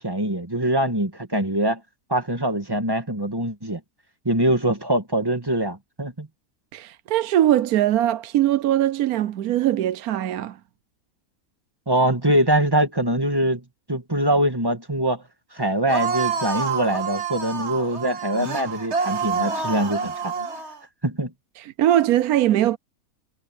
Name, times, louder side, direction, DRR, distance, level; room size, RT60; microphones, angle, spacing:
voice 1, 0.0-1.8 2.1-3.8 4.3-6.3 11.9-13.6 13.9-15.2 15.5-20.3 21.0-21.3, right 1 dB, 15° right, 1.7 m, -23 dB
voice 2, 6.7-10.6 21.6-22.8, right 12 dB, 75° right, 1.1 m, -21 dB
sound 1, 15.9-20.8, right 5 dB, 45° right, 2.0 m, -27 dB
omnidirectional pair, 1.6 m